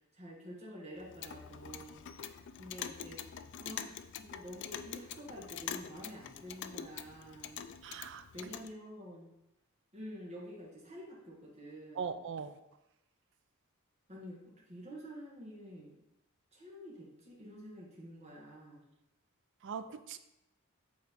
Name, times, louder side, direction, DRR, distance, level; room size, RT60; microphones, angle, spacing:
voice 1, 0.1-2.1 2.6-3.3 3.6-7.7 8.3-9.3 9.9-12.1 14.1-14.4 14.7-16.0 16.5-18.9, equal, 30° right, -5 dB, 1.7 m, -48 dB
Clock, 1.0-8.7, left 9 dB, 60° left, 0.4 m, -45 dB
voice 2, 7.8-8.5 11.9-12.6 19.6-20.2, right 6 dB, 60° right, 11 dB, 0.4 m, -41 dB
8.5 x 3.8 x 3.6 m, 0.90 s
head